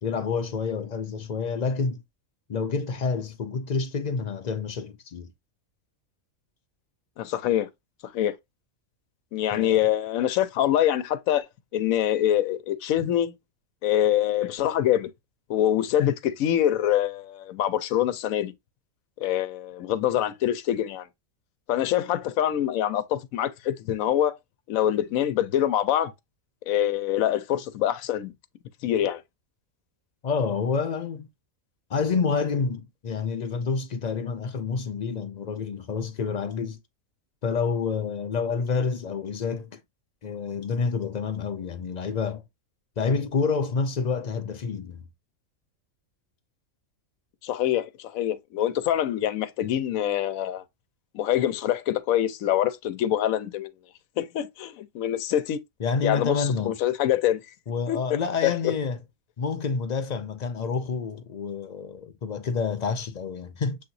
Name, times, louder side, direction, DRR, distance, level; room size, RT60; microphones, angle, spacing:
voice 1, 0.0-2.0 2.5-5.3 9.5-9.9 30.2-31.3 31.9-36.8 37.4-39.8 40.2-42.4 43.0-45.0 55.8-56.7 57.7-59.0 59.4-63.8, left 5 dB, 60° left, 0.4 m, -28 dB
voice 2, 7.2-7.7 8.1-8.3 9.3-11.5 11.7-13.3 13.8-15.1 15.5-18.5 19.2-21.0 21.7-24.4 24.7-26.1 26.7-28.3 28.8-29.2 47.4-50.6 51.1-53.7 54.2-55.6 56.0-57.4 57.9-58.0 58.4-58.6, left 11 dB, 85° left, 1.0 m, -25 dB
7.1 x 2.9 x 2.5 m
omnidirectional pair, 1.4 m